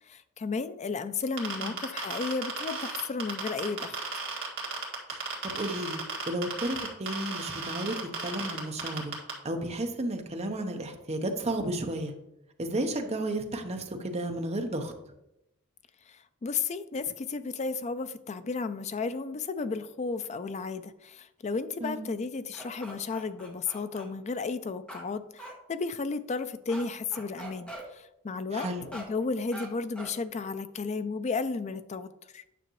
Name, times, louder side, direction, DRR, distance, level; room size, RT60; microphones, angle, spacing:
voice 1, 0.1-4.0 16.1-32.4, left 4 dB, 30° left, 12 dB, 0.4 m, -33 dB
sound 1, 1.4-9.3, right 4 dB, 60° right, 2.0 m, -34 dB
voice 2, 5.1-9.1 9.4-12.1 12.6-14.9 21.8-22.0 28.5-28.9, right 1 dB, 30° right, 5 dB, 0.8 m, -33 dB
sound 2, 22.5-24.1 24.9-25.0 25.4-25.5 26.7-26.8 27.1-27.8 28.6-29.1 29.5-29.7 30.0-30.1, right 1 dB, 5° left, 1.1 m, -42 dB
9.1 x 5.9 x 3.1 m, 0.86 s
head